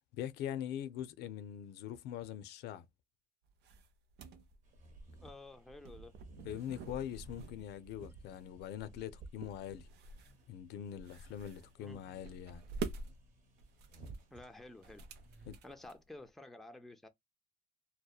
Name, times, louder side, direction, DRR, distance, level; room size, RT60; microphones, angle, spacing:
voice 1, 0.1-2.9 6.4-9.9 10.5-12.6 15.5-15.6, left 10 dB, 75° left, 0.4 m, -43 dB
sound 1, 3.5-16.3, right 5 dB, 75° right, 0.5 m, -48 dB
sound 2, 4.6-15.5, right 2 dB, 50° right, 1.0 m, -60 dB
voice 2, 5.2-6.1 11.8-12.0 14.3-15.1 15.4-17.1, left 2 dB, ahead, 0.4 m, -52 dB
2.7 x 2.1 x 2.2 m
cardioid pair, 110°, 17 cm